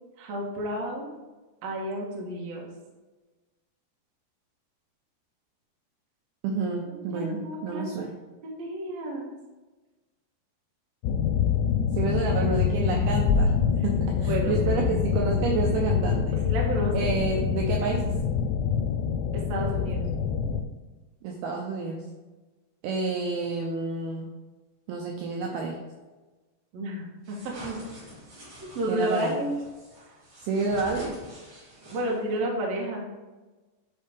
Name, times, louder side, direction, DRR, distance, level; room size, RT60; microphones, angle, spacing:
voice 1, 0.2-1.1 1.6-2.7 7.0-7.9 8.4-9.3 14.3-14.9 16.4-17.1 19.5-20.0 26.7-27.8 28.6-29.5 31.9-33.1, right 1 dB, 70° right, -1 dB, 1.6 m, -31 dB
voice 2, 6.4-8.1 12.0-13.5 13.8-16.4 16.9-18.1 21.2-22.0 22.8-24.3 24.9-25.8 28.9-29.4 30.4-31.2, right 4 dB, 90° right, 0 dB, 2.2 m, -29 dB
sound 1, 11.0-20.6, left 7 dB, 80° left, 2.7 m, -25 dB
sound 2, 27.2-32.4, equal, 40° right, 2.8 m, -46 dB
9.8 x 4.7 x 3.5 m, 1.2 s
omnidirectional pair, 5.2 m